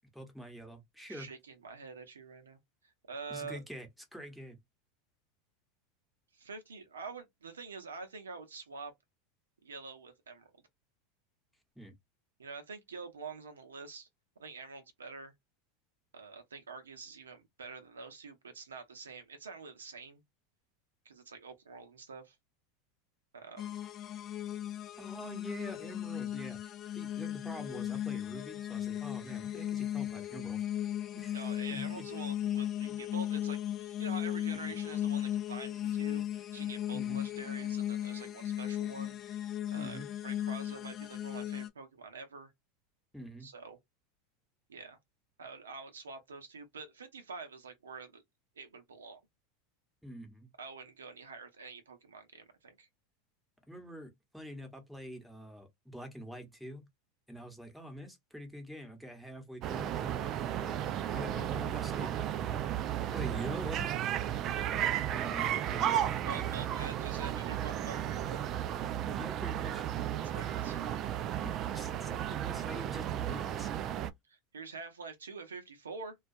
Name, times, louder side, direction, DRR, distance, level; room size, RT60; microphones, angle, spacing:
voice 1, 0.1-1.3 3.3-4.6 11.8-11.9 25.0-26.6 26.9-30.6 31.1-31.4 31.7-32.1 36.9-37.2 39.7-40.1 43.1-43.5 50.0-50.5 53.7-56.9 57.3-62.9 63.1-63.9 65.1-66.2 69.0-69.9 71.4-73.9, equal, ahead, 0.9 m, -46 dB
voice 2, 1.1-2.6 3.1-3.6 6.3-8.9 9.6-10.5 12.4-14.1 14.4-15.3 16.1-20.2 21.0-22.4 23.3-23.8 31.3-42.5 43.4-43.8 44.7-45.0 45.4-48.2 48.6-49.2 50.6-52.9 66.2-68.4 70.2-70.8 74.3-76.2, right 4 dB, 90° right, 0.6 m, -46 dB
sound 1, 23.6-41.7, left 11 dB, 40° left, 0.4 m, -36 dB
sound 2, 59.6-74.1, right 11 dB, 45° right, 0.3 m, -34 dB
2.3 x 2.2 x 2.6 m
hypercardioid pair, 90°, 0 cm